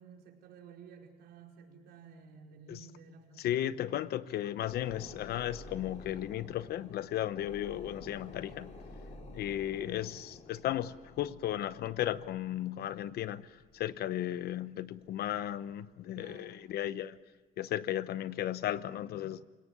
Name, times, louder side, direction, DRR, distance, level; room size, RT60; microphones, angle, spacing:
voice 1, 0.0-3.7 16.1-16.7, right 6 dB, 75° right, 4.9 m, -53 dB
voice 2, 3.4-8.7 9.3-13.5 13.7-17.2 17.6-19.4, left 12 dB, 70° left, 0.9 m, -35 dB
sound 1, 4.6-14.6 15.0-15.1, left 2 dB, 40° left, 4.4 m, -51 dB
28.0 x 18.0 x 9.6 m
cardioid pair, 110°, 17 cm